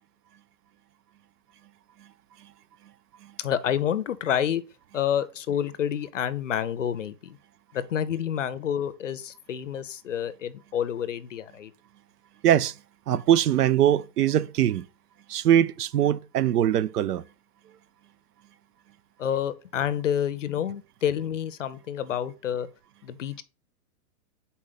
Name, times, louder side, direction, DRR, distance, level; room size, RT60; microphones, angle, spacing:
voice 1, 3.4-4.6 4.9-7.4 7.7-11.7 19.2-22.7 23.0-23.4, left 9 dB, 50° left, 0.6 m, -28 dB
voice 2, 12.4-12.7 13.1-14.9 15.3-17.2, right 11 dB, 75° right, 0.6 m, -22 dB
5.0 x 4.2 x 5.7 m
hypercardioid pair, 180°, 47 cm